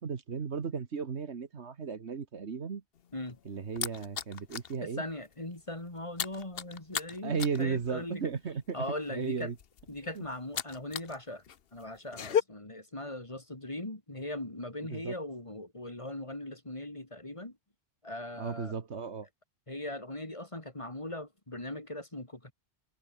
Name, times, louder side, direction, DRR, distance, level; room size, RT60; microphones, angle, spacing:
voice 1, 0.0-2.8 3.5-5.0 7.2-8.8 9.1-9.6 10.2-10.3 14.9-15.1 18.4-19.3, right 5 dB, 70° right, 1.7 m, -35 dB
sound 1, 3.0-4.8 5.1-5.3 5.6-11.2 11.4-12.4, left 8 dB, 60° left, 1.0 m, -35 dB
voice 2, 4.8-8.2 8.7-9.5 9.9-11.4 11.7-17.6 18.0-18.7 19.7-22.5, left 1 dB, 25° left, 2.8 m, -40 dB
omnidirectional pair, 1.2 m